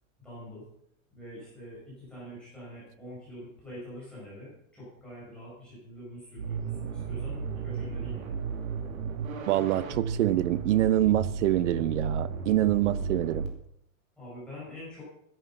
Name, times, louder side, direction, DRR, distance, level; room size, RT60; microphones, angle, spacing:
voice 1, 0.2-0.7 1.1-8.4 14.2-15.0, equal, ahead, -9 dB, 5.5 m, -45 dB
sound 1, 6.4-13.5, right 5 dB, 85° right, 2.8 m, -34 dB
voice 2, 9.5-13.5, right 13 dB, 60° right, 16 dB, 0.8 m, -25 dB
11.0 x 11.0 x 5.8 m, 0.74 s
supercardioid pair, 175°, 40 cm